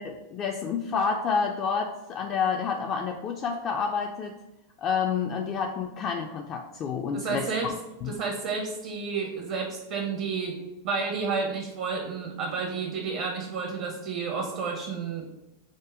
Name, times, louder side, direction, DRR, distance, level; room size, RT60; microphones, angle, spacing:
voice 1, 0.0-4.3 4.8-7.5 8.0-8.2, left 6 dB, 35° left, 2 dB, 0.3 m, -29 dB
voice 2, 7.1-7.7 8.1-10.6 10.8-15.3, right 5 dB, 50° right, 1 dB, 0.6 m, -31 dB
5.0 x 2.1 x 3.6 m, 0.98 s
figure-of-eight pair, 90°, 0 cm